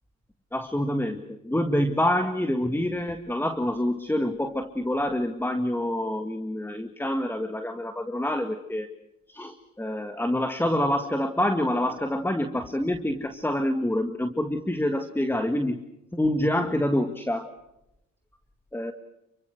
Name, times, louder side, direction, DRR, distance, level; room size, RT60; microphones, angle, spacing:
voice 1, 0.5-8.9 9.3-15.8 16.1-17.5 18.7-18.9, left 1 dB, 5° left, 8 dB, 1.8 m, -27 dB
29.0 x 24.0 x 6.5 m, 0.87 s
cardioid pair, 90°, 30 cm